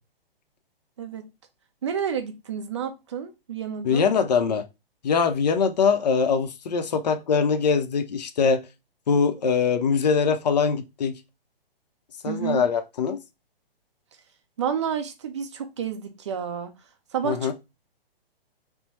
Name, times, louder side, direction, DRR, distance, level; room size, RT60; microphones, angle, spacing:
voice 1, 1.0-1.3 1.8-4.0 12.2-12.6 14.6-16.7 17.1-17.5, right 8 dB, 30° right, 0.4 m, -30 dB
voice 2, 3.8-4.6 5.0-8.6 9.1-11.1 12.2-13.2 17.2-17.5, left 5 dB, 45° left, 0.5 m, -22 dB
3.9 x 2.0 x 2.9 m
figure-of-eight pair, 125°, 30 cm